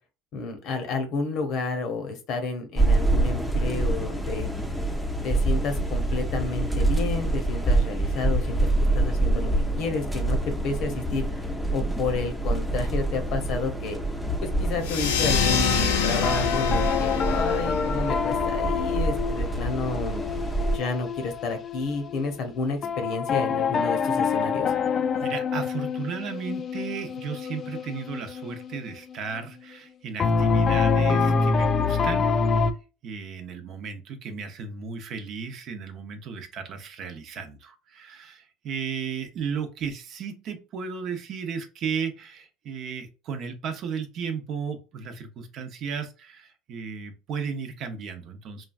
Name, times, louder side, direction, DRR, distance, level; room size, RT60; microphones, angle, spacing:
voice 1, 0.3-4.5 5.2-8.7 8.9-9.5 9.8-10.4 10.6-11.2 11.7-14.0 14.4-20.2 20.7-24.7, left 4 dB, 60° left, 7 dB, 0.9 m, -30 dB
sound 1, 2.8-20.8, right 2 dB, ahead, 0.6 m, -26 dB
sound 2, 14.8-19.9, left 6 dB, 85° left, 0.6 m, -27 dB
sound 3, 15.2-15.8 16.2-22.4 22.8-29.4 30.2-32.7, left 5 dB, 40° left, 0.3 m, -26 dB
voice 2, 25.2-32.3 33.0-48.6, right 6 dB, 55° right, 7 dB, 0.7 m, -34 dB
3.1 x 2.3 x 2.3 m, 0.32 s
hypercardioid pair, 85°, 0 cm